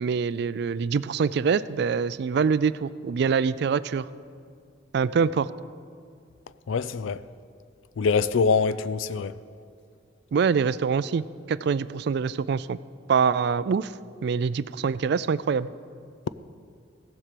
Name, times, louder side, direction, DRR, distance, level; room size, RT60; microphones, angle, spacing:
voice 1, 0.0-4.1 4.9-5.5 10.3-12.8 13.1-13.9 14.2-15.7, right 6 dB, 60° right, 0.3 m, -25 dB
voice 2, 6.7-7.2 8.0-9.3, left 5 dB, 85° left, 0.4 m, -24 dB
15.5 x 7.4 x 6.7 m
head